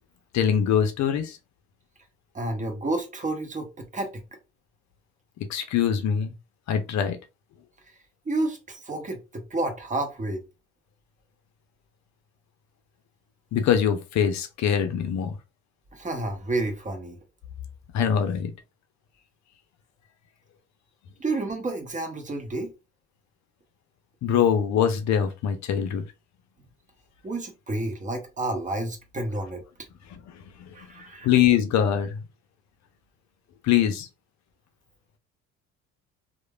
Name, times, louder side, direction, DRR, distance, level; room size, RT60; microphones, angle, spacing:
voice 1, 0.3-1.4 5.5-6.3 6.7-7.2 13.5-15.4 17.9-18.5 24.2-26.0 30.6-30.7 31.2-32.2 33.6-34.1, left 8 dB, 60° left, 0.5 m, -23 dB
voice 2, 2.3-4.2 7.9-8.0 8.3-10.4 15.9-17.2 21.2-22.7 27.2-29.6 30.7-31.3, right 2 dB, 25° right, 0.8 m, -30 dB
3.0 x 2.2 x 2.2 m
supercardioid pair, 65°, 33 cm